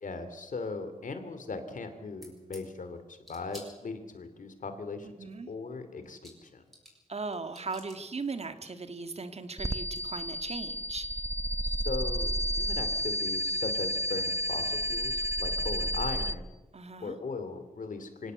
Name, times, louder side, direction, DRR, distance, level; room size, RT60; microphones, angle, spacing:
voice 1, 0.0-5.2 5.5-6.6 11.6-16.6 17.0-18.3, left 4 dB, 70° left, 9 dB, 2.9 m, -39 dB
sound 1, 2.2-2.6 3.2-4.2 5.7-5.8 6.0-7.1 7.3-8.0 9.3-9.4 9.6-10.0, equal, ahead, 7.2 m, -51 dB
voice 2, 5.2-5.5 7.1-11.1 16.7-17.2, right 4 dB, 50° right, 9 dB, 1.7 m, -38 dB
sound 2, 9.6-16.3, equal, 20° right, 0.9 m, -31 dB
25.0 x 17.5 x 7.9 m, 1.1 s
wide cardioid pair, 110°, 14 cm